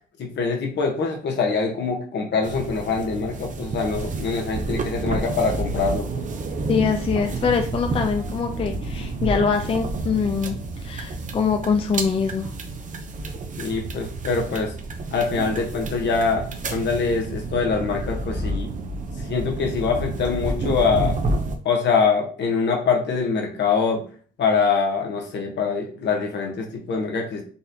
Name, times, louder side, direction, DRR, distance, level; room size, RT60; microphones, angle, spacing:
voice 1, 0.2-6.1 13.6-14.7 15.1-16.4 16.7-18.7 19.3-21.2 21.6-24.0 24.4-27.4, left 5 dB, 60° left, 2 dB, 1.1 m, -24 dB
sound 1, 2.4-21.6, right 2 dB, 40° right, 0.6 m, -30 dB
voice 2, 6.7-10.6 10.8-12.5, left 6 dB, 30° left, 5 dB, 0.4 m, -23 dB
4.0 x 2.4 x 2.8 m, 0.41 s
cardioid pair, 90°, 20 cm